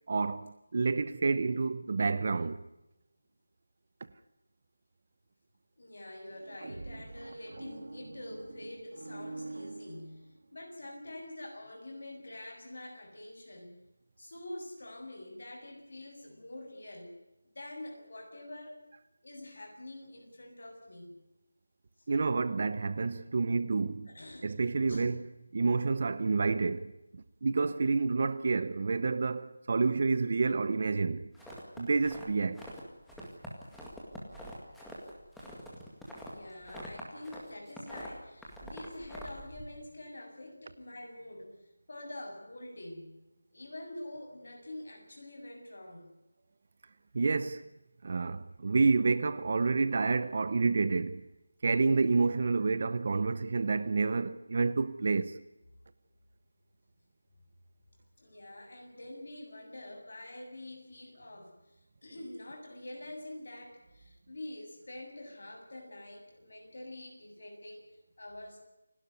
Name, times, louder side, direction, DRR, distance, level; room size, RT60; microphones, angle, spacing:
voice 1, 0.1-2.6 22.1-24.1 24.4-31.3 31.8-32.6 47.1-47.7 48.0-51.3 51.6-55.4, right 4 dB, 30° right, 0.8 m, -29 dB
voice 2, 5.8-13.7 14.2-17.1 17.5-18.8 19.2-21.1 24.1-24.5 24.9-25.1 36.3-43.2 43.5-46.1 58.2-61.5 62.0-68.6, left 1 dB, 50° left, 7.3 m, -46 dB
sound 1, 6.3-10.6, right 2 dB, 50° right, 2.2 m, -45 dB
sound 2, 31.3-32.8 33.1-37.4 37.7-39.6, equal, ahead, 2.0 m, -45 dB
29.0 x 12.5 x 9.6 m
figure-of-eight pair, 175°, 0 cm